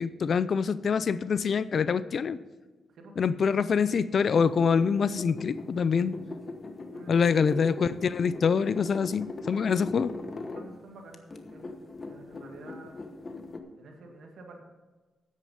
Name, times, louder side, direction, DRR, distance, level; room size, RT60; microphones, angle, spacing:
voice 1, 0.0-2.4 3.2-6.2 7.1-10.1, left 6 dB, 60° left, 16 dB, 0.5 m, -25 dB
sound 1, 4.2-10.7 11.1-13.6, left 3 dB, 40° left, 1.1 m, -40 dB
voice 2, 10.5-12.9 13.8-14.6, right 2 dB, 75° right, 2 dB, 2.1 m, -49 dB
9.5 x 9.1 x 5.4 m, 1.3 s
cardioid pair, 75°, 0 cm